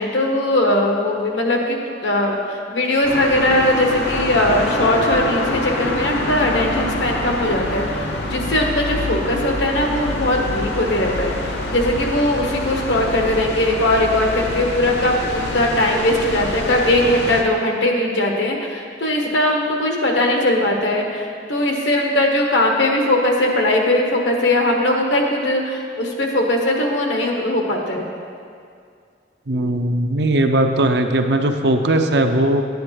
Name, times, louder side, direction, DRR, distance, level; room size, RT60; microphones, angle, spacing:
voice 1, 0.0-1.8 2.0-8.0 8.3-28.1, left 1 dB, 85° left, 1 dB, 1.3 m, -19 dB
sound 1, 3.0-17.4, left 1 dB, 65° left, 0.9 m, -26 dB
voice 2, 29.5-32.6, right 1 dB, 65° right, 6 dB, 0.6 m, -18 dB
10.5 x 9.3 x 3.2 m, 2.3 s
head